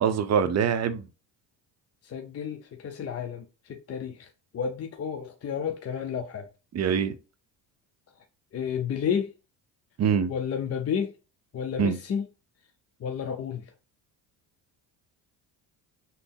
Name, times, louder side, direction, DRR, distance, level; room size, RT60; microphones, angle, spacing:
voice 1, 0.0-1.1 6.7-7.1 10.0-10.3 11.8-12.0, right 7 dB, 35° right, 0.5 m, -24 dB
voice 2, 2.0-4.3 4.5-6.5 8.5-9.3 10.3-11.1 11.5-12.2 13.0-13.6, left 7 dB, 30° left, 0.5 m, -31 dB
3.9 x 2.0 x 3.5 m
supercardioid pair, 75°, 48 cm